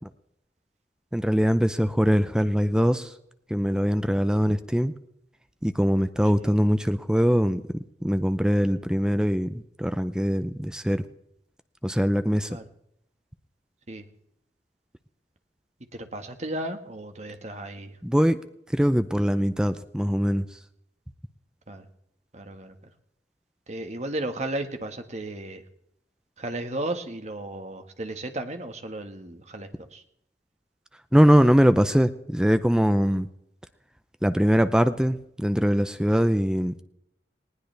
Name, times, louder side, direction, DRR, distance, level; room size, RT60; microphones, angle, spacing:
voice 1, 1.1-3.1 3.5-4.9 5.6-11.1 11.8-12.6 18.0-18.4 18.7-20.6 31.1-33.3 34.2-36.8, equal, 5° right, 11 dB, 0.6 m, -22 dB
voice 2, 15.9-17.9 21.7-21.8 22.3-22.7 23.7-25.6 26.4-30.0, right 1 dB, 40° right, 6 dB, 1.6 m, -34 dB
19.5 x 18.5 x 3.4 m, 0.77 s
head